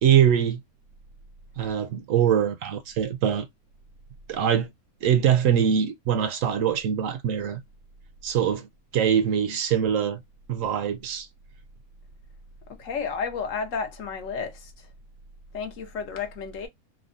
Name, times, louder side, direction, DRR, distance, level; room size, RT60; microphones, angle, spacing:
voice 1, 0.0-0.6 1.6-3.5 4.3-4.7 5.0-7.6 8.2-8.7 8.9-10.2 10.5-11.3, right 8 dB, 70° right, 0.9 m, -23 dB
voice 2, 12.8-14.6 15.5-16.7, left 5 dB, 65° left, 1.0 m, -31 dB
3.5 x 2.1 x 2.4 m
omnidirectional pair, 1.6 m